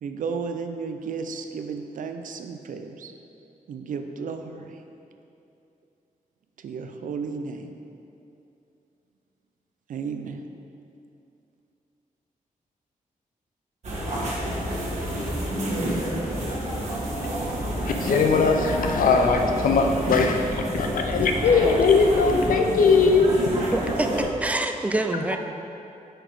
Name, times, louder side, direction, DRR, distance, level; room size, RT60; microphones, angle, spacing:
voice 1, 0.0-3.1 3.7-4.8 6.6-7.8 9.9-10.4, right 5 dB, 70° right, 6 dB, 0.5 m, -33 dB
sound 1, 13.8-24.2, right 1 dB, 55° right, 1.6 m, -29 dB
voice 2, 17.8-23.7, left 4 dB, 80° left, 4 dB, 0.6 m, -20 dB
voice 3, 23.7-25.4, right 2 dB, 10° right, 6 dB, 0.3 m, -26 dB
5.9 x 5.0 x 4.7 m, 2.7 s
wide cardioid pair, 140°, 14 cm